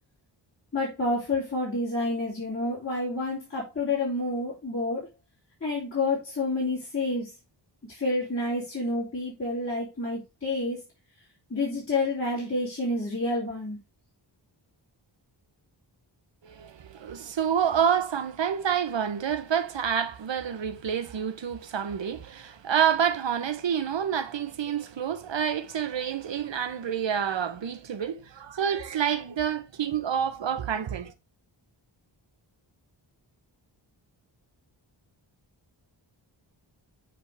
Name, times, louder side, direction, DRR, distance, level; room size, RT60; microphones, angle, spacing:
voice 1, 0.7-5.1 5.6-7.3 7.9-10.8 11.5-13.8, left 2 dB, 30° left, 3.2 m, -29 dB
voice 2, 16.4-31.1, right 8 dB, 70° right, 1.0 m, -28 dB
7.2 x 5.3 x 3.4 m
wide cardioid pair, 70°, 46 cm